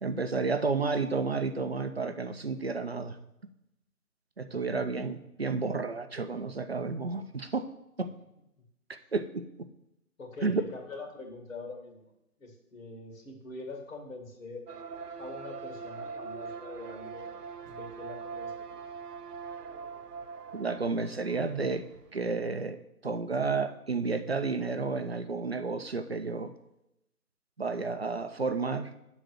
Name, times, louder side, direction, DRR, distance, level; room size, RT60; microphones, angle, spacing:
voice 1, 0.0-3.2 4.4-7.7 8.0-8.1 9.1-9.4 10.4-10.6 20.5-21.8 22.1-22.8 23.0-26.5 27.6-28.9, right 4 dB, 45° right, 8 dB, 0.5 m, -31 dB
voice 2, 4.5-4.9 8.0-8.2 8.6-8.7 10.2-12.1 12.4-14.7 15.2-17.3 17.6-18.8, left 3 dB, 60° left, 1 dB, 2.2 m, -44 dB
sound 1, 14.7-22.2, right 5 dB, 90° right, 0.8 m, -42 dB
8.3 x 3.9 x 6.1 m, 0.87 s
hypercardioid pair, 170°, 46 cm